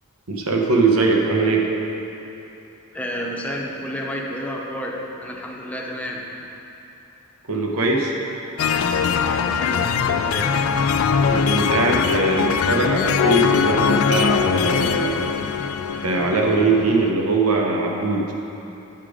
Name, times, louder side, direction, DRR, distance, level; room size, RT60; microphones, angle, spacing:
voice 1, 0.3-1.7 7.5-8.1 11.3-15.3 15.9-18.3, right 3 dB, 85° right, 0 dB, 1.0 m, -21 dB
voice 2, 2.9-6.3 9.2-10.5, equal, 5° left, -2 dB, 0.7 m, -31 dB
sound 1, 8.6-17.1, left 6 dB, 70° left, 0.3 m, -21 dB
9.1 x 4.9 x 5.0 m, 3.0 s
head